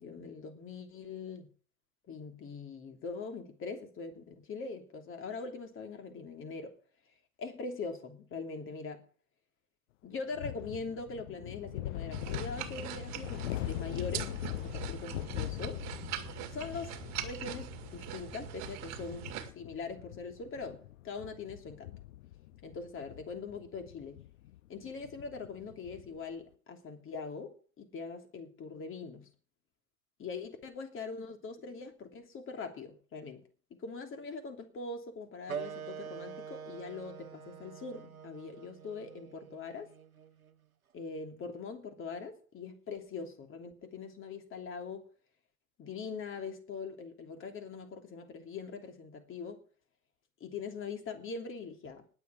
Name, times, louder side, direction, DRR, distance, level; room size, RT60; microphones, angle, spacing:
voice 1, 0.0-1.5 2.1-6.7 7.4-9.0 10.0-15.8 16.5-19.3 19.5-21.9 22.6-24.2 24.7-29.3 30.2-33.4 33.7-39.9 40.9-45.0 45.8-49.6 50.4-52.0, left 4 dB, 30° left, 3.1 m, -42 dB
sound 1, 10.3-26.2, left 15 dB, 60° left, 0.7 m, -42 dB
sound 2, 12.1-19.5, right 13 dB, 40° right, 2.0 m, -42 dB
sound 3, 35.5-40.6, right 7 dB, 85° right, 1.1 m, -45 dB
19.5 x 7.3 x 5.2 m
figure-of-eight pair, 85°, 41 cm